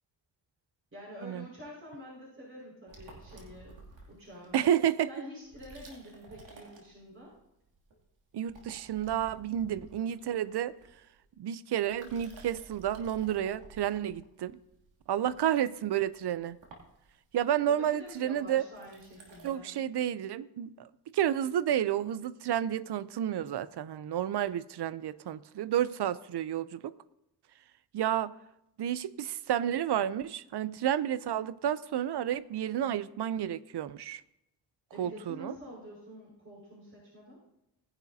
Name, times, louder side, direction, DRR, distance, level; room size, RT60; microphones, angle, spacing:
voice 1, 0.9-3.8 4.1-4.6 5.1-7.3 17.8-19.7 34.9-37.4, equal, 30° right, 5.1 m, -47 dB
sound 1, 2.9-4.7 5.4-7.4 7.7-8.1 8.3-11.3 11.8-19.6, right 3 dB, 90° right, 2.7 m, -54 dB
voice 2, 4.5-5.1 8.3-10.8 11.4-14.5 15.1-16.6 17.3-18.6 19.4-27.0 27.9-28.4 28.8-34.2 35.0-35.5, right 10 dB, 65° right, 0.6 m, -31 dB
19.5 x 11.0 x 2.7 m
cardioid pair, 75°, 44 cm